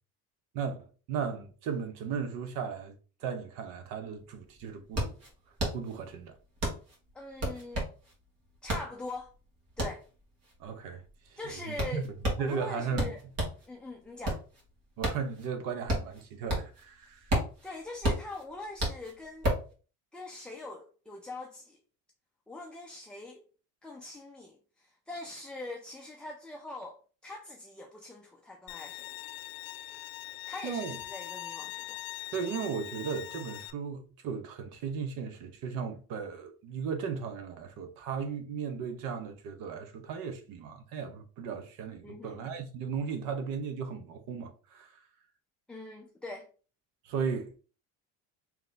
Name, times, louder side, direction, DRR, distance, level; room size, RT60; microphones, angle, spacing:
voice 1, 0.5-3.0 3.2-5.1 5.7-6.3 10.6-12.1 12.4-13.1 15.0-17.3 30.6-31.0 32.3-44.9 47.0-47.6, right 6 dB, 75° right, 0.9 m, -36 dB
sound 1, 4.0-4.1 4.4-13.7 14.0-16.9 17.1-19.7, right 1 dB, 45° right, 1.8 m, -32 dB
voice 2, 7.1-7.9 8.6-9.3 9.8-10.0 11.4-12.1 12.4-13.2 13.7-14.4 17.6-19.5 20.1-21.8 22.5-23.4 23.8-29.1 30.5-32.0 42.0-42.5 45.7-46.5, left 2 dB, 5° left, 0.3 m, -43 dB
Bowed string instrument, 28.7-33.7, left 16 dB, 85° left, 0.5 m, -42 dB
3.3 x 3.0 x 3.9 m
cardioid pair, 140°, 34 cm